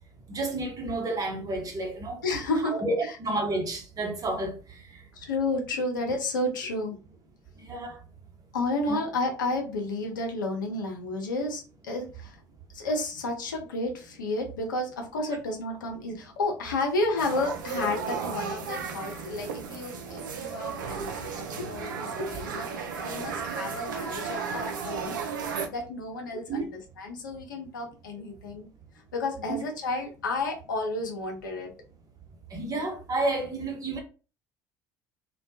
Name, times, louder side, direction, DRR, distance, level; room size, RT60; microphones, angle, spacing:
voice 1, 0.3-2.2 2.7-4.8 7.7-8.0 8.9-9.0 21.6-21.7 26.5-26.7 29.5-29.6 32.5-34.0, right 2 dB, 35° right, 0.9 m, -30 dB
voice 2, 2.2-2.8 3.0-3.2 5.1-7.0 8.5-12.4 12.7-25.2 25.7-28.7 29.1-31.7, left 2 dB, 80° left, 0.6 m, -31 dB
sound 1, 17.2-25.7, right 5 dB, 80° right, 0.4 m, -34 dB
2.2 x 2.1 x 2.7 m
figure-of-eight pair, 55°, 10 cm